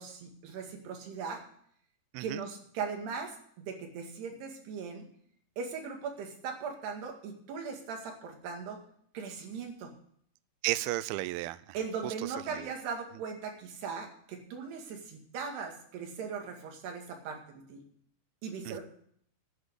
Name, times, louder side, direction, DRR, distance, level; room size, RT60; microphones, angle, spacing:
voice 1, 0.0-1.4 2.2-5.1 5.6-8.8 9.1-9.9 11.7-17.4 17.7-17.8 18.4-18.8, right 5 dB, 70° right, 2 dB, 4.1 m, -39 dB
voice 2, 10.6-11.8 12.0-12.1 12.5-12.7 18.7-18.8, right 18 dB, 90° right, 15 dB, 2.1 m, -33 dB
11.5 x 8.6 x 8.1 m, 0.63 s
omnidirectional pair, 5.0 m